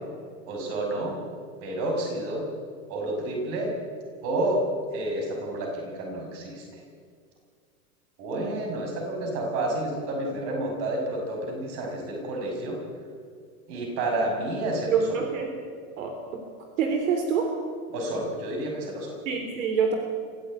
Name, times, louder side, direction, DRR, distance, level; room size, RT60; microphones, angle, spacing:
voice 1, 0.5-1.1 1.6-2.4 2.9-3.7 4.2-4.6 4.9-6.8 8.2-12.8 13.7-15.2 17.9-19.2, right 1 dB, 35° right, 1 dB, 6.4 m, -30 dB
voice 2, 14.9-15.5 16.0-16.4 16.8-17.5 19.3-20.0, right 6 dB, 65° right, 4 dB, 3.6 m, -26 dB
26.0 x 15.5 x 9.0 m, 2.1 s
supercardioid pair, 175°, 43 cm